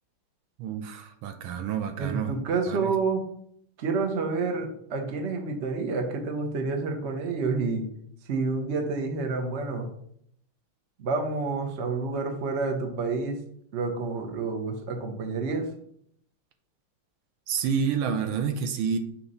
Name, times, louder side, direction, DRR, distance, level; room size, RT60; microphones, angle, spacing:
voice 1, 0.6-2.3 2.7-2.9 17.5-19.0, right 7 dB, 75° right, 7 dB, 1.4 m, -29 dB
voice 2, 2.0-3.2 3.8-7.8 8.3-9.9 11.0-13.4 13.7-15.6, right 4 dB, 50° right, 4 dB, 0.8 m, -29 dB
6.8 x 3.0 x 5.4 m, 0.68 s
omnidirectional pair, 2.4 m